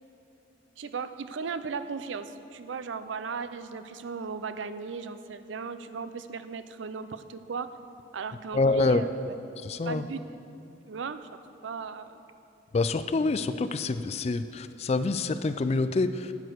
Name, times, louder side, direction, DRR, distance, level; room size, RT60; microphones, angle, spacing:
voice 1, 0.8-7.7 8.1-9.1 9.9-10.2 10.9-12.2, right 5 dB, 80° right, 11 dB, 0.5 m, -36 dB
voice 2, 8.5-9.0 9.6-10.1 12.7-16.3, left 3 dB, 35° left, 12 dB, 0.3 m, -26 dB
12.5 x 8.4 x 4.6 m, 2.8 s
head